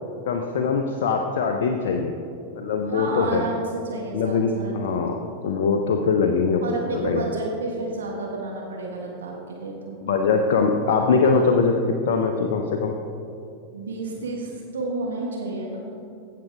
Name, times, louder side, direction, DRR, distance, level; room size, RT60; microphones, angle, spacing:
voice 1, 0.3-2.2 2.6-3.5 4.1-5.1 5.4-7.2 10.0-12.9, left 5 dB, 55° left, 4 dB, 0.6 m, -22 dB
voice 2, 2.9-5.2 6.6-10.0 13.7-16.0, right 2 dB, 65° right, -2 dB, 1.4 m, -31 dB
16.5 x 6.7 x 3.6 m, 2.7 s
figure-of-eight pair, 90°, 0 cm